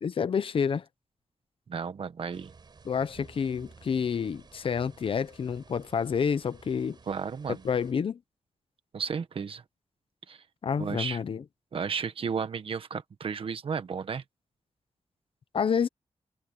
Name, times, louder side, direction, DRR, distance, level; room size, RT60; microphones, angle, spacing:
voice 1, 0.0-0.8 2.8-7.0 7.6-8.2 10.6-11.4 15.5-15.9, left 6 dB, 55° left, 0.8 m, -28 dB
voice 2, 1.7-2.5 7.1-7.6 8.9-9.6 10.3-10.4 10.8-11.2 11.7-14.2, right 6 dB, 60° right, 1.4 m, -33 dB
sound 1, 2.3-7.9, right 4 dB, 45° right, 6.0 m, -54 dB
wide cardioid pair, 145°, 11 cm